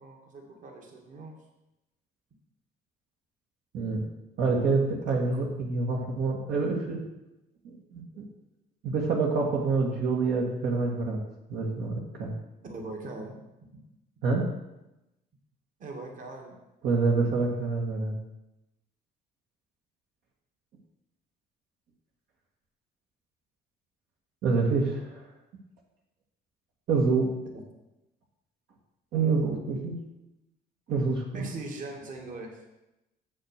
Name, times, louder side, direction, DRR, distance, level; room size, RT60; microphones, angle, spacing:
voice 1, 0.0-1.3 12.6-13.4 15.8-16.6 27.5-27.6 31.3-32.6, right 2 dB, 50° right, 2 dB, 1.9 m, -40 dB
voice 2, 3.7-4.1 4.4-7.0 7.6-8.2 8.8-11.2 11.5-12.3 14.2-14.5 16.8-18.1 24.4-25.2 26.9-27.3 29.1-30.0 30.9-31.5, right 4 dB, 70° right, -1 dB, 1.8 m, -27 dB
7.4 x 6.5 x 6.5 m, 0.94 s
cardioid pair, 110°, 17 cm